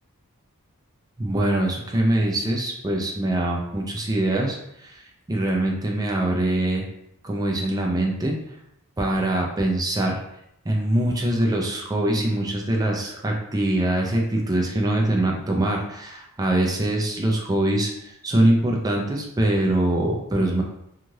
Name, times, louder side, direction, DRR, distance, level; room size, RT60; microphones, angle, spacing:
voice 1, 1.2-5.0 5.3-6.8 7.2-8.3 9.0-10.2 10.6-20.6, right 1 dB, 15° right, -1 dB, 0.4 m, -23 dB
3.1 x 2.4 x 2.7 m, 0.79 s
head